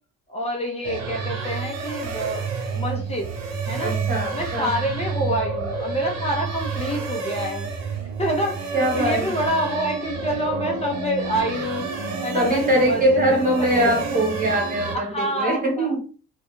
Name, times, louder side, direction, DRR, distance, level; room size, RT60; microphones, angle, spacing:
voice 1, 0.3-2.5 2.7-3.3 3.7-4.0 4.3-11.8 12.2-14.1 14.9-16.0, equal, 20° left, 1 dB, 0.4 m, -27 dB
sound 1, 0.8-15.0, right 4 dB, 60° right, 0.7 m, -29 dB
voice 2, 3.8-4.7 8.7-9.3 12.3-16.0, right 1 dB, 30° right, 1 dB, 0.9 m, -22 dB
2.4 x 2.1 x 2.9 m, 0.39 s
cardioid pair, 115°, 30 cm